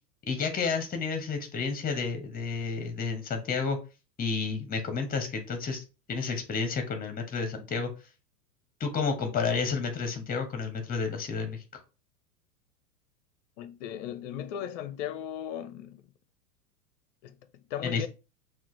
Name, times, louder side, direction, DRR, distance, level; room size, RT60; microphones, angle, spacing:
voice 1, 0.3-3.8 4.2-7.9 8.8-11.6 17.8-18.1, left 5 dB, 20° left, 1.0 m, -31 dB
voice 2, 13.6-16.0 17.2-17.4 17.7-18.1, left 10 dB, 50° left, 0.5 m, -37 dB
5.9 x 2.5 x 3.1 m
figure-of-eight pair, 95°, 48 cm